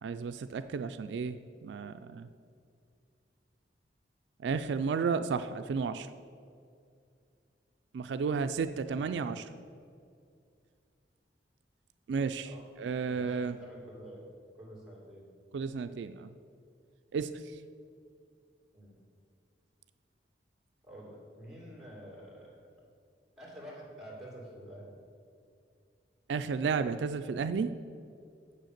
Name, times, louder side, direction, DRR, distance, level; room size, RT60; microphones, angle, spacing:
voice 1, 0.0-2.3 4.4-6.1 7.9-9.4 12.1-12.5 12.8-13.6 15.5-16.3 17.1-17.3 26.3-27.7, right 5 dB, 75° right, 10 dB, 0.3 m, -32 dB
voice 2, 8.9-9.4 12.4-12.6 13.1-14.2 14.6-15.3 18.7-19.0 20.8-22.6 23.4-25.0, right 1 dB, ahead, -3 dB, 2.5 m, -48 dB
7.5 x 6.5 x 6.6 m, 2.4 s
head